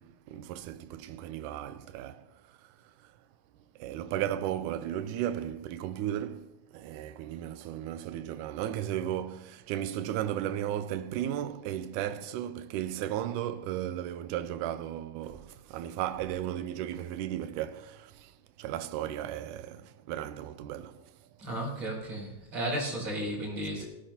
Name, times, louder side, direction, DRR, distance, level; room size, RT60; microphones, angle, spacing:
voice 1, 0.0-2.3 3.8-18.3 18.6-21.0, right 11 dB, 80° right, 1.9 m, -35 dB
voice 2, 21.4-23.8, right 1 dB, 35° right, 4.8 m, -34 dB
18.0 x 14.0 x 2.9 m
omnidirectional pair, 4.1 m